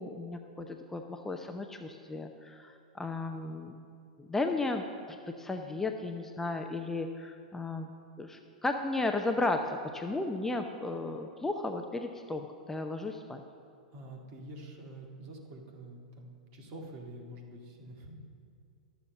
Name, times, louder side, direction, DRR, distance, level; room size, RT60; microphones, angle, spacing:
voice 1, 0.0-3.8 4.2-4.8 5.4-7.9 8.2-13.4, left 2 dB, 10° left, 5 dB, 0.5 m, -34 dB
voice 2, 13.9-18.1, right 1 dB, 45° right, 1 dB, 1.8 m, -47 dB
12.0 x 7.1 x 5.3 m, 2.4 s
figure-of-eight pair, 100°, 4 cm